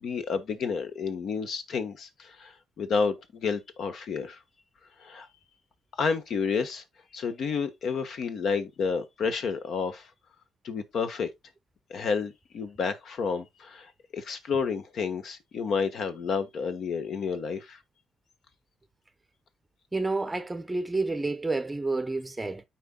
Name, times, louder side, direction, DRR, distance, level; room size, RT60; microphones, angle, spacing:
voice 1, 0.0-2.5 2.8-4.4 5.0-5.3 6.0-6.8 7.1-10.1 10.6-11.3 11.9-13.9 14.1-17.8, left 5 dB, 65° left, 1.3 m, -30 dB
voice 2, 19.9-22.6, right 3 dB, 15° right, 0.7 m, -29 dB
12.5 x 4.3 x 2.3 m
cardioid pair, 90°, 0 cm